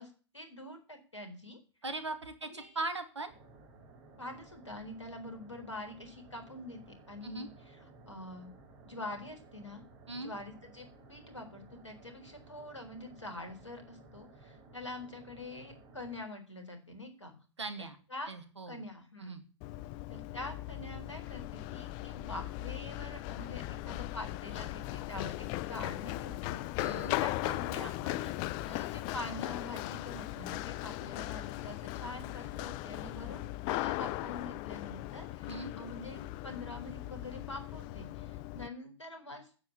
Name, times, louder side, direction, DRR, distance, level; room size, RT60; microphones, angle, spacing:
voice 1, 0.0-1.6 2.5-2.8 4.2-7.8 8.1-8.5 8.8-9.8 10.2-17.3 18.1-18.3 18.7-19.4 20.1-28.3 28.7-39.5, left 2 dB, 80° left, 6 dB, 4.1 m, -45 dB
voice 2, 1.8-3.3 7.2-7.5 10.1-10.3 17.6-18.0 18.3-18.8 19.2-19.4 26.8-27.1 35.5-35.7, right 2 dB, 75° right, 9 dB, 2.5 m, -39 dB
sound 1, 3.3-16.2, right 3 dB, 35° right, 6.4 m, -56 dB
Run, 19.6-38.7, left 17 dB, 30° left, 0.5 m, -38 dB
9.7 x 8.7 x 8.4 m, 0.36 s
figure-of-eight pair, 105°, 15 cm